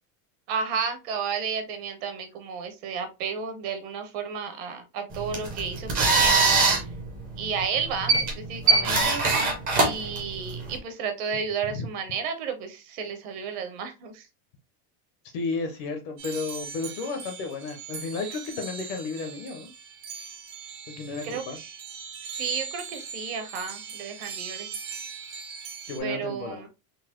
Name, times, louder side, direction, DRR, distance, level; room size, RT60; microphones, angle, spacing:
voice 1, 0.5-6.9 7.4-9.4 9.8-14.3 21.2-21.7 22.2-24.7 26.0-26.7, right 6 dB, 45° right, 7 dB, 0.8 m, -32 dB
sound 1, 5.1-10.8, right 3 dB, 20° right, 0.4 m, -23 dB
voice 2, 8.6-9.2 11.6-11.9 15.3-19.7 20.9-21.6 25.9-26.7, left 4 dB, 35° left, 5 dB, 0.4 m, -33 dB
sound 2, 16.2-26.0, right 6 dB, 75° right, 1.3 m, -40 dB
3.9 x 2.5 x 2.8 m, 0.26 s
supercardioid pair, 175°, 49 cm